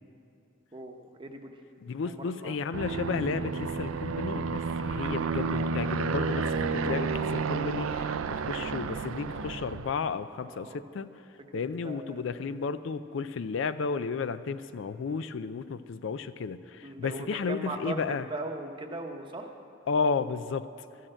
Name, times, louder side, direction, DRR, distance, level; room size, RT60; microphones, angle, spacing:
voice 1, 0.7-1.6 2.0-2.6 10.4-10.8 11.5-12.2 15.0-15.2 16.8-19.5, right 2 dB, 25° right, 4 dB, 0.9 m, -39 dB
voice 2, 1.8-11.1 11.5-18.3 19.9-20.7, left 5 dB, 65° left, 13 dB, 0.4 m, -33 dB
Aircraft, 2.7-10.1, right 4 dB, 80° right, 0.4 m, -31 dB
13.0 x 6.5 x 8.9 m, 2.7 s
head